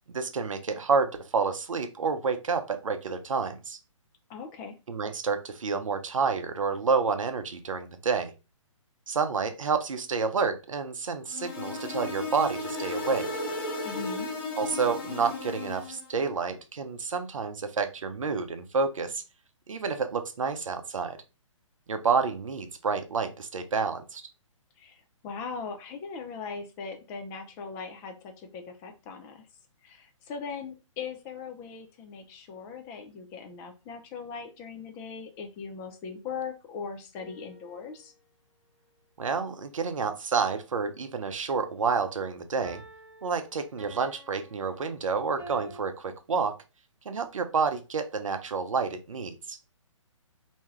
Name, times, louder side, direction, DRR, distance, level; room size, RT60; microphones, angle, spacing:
voice 1, 0.1-3.8 4.9-8.3 9.1-13.3 14.6-19.2 19.7-21.2 21.9-24.2 39.2-42.8 43.2-46.6 47.1-49.6, right 5 dB, 75° right, 8 dB, 0.6 m, -29 dB
voice 2, 4.3-4.8 13.8-14.3 24.8-29.5 29.8-38.1, left 5 dB, 15° left, 5 dB, 0.3 m, -40 dB
sound 1, 11.3-16.1, left 2 dB, 45° left, 0.9 m, -34 dB
sound 2, 37.2-38.2 42.6-45.8, right 1 dB, 10° right, 0.9 m, -49 dB
2.7 x 2.2 x 3.1 m, 0.29 s
figure-of-eight pair, 135°, 17 cm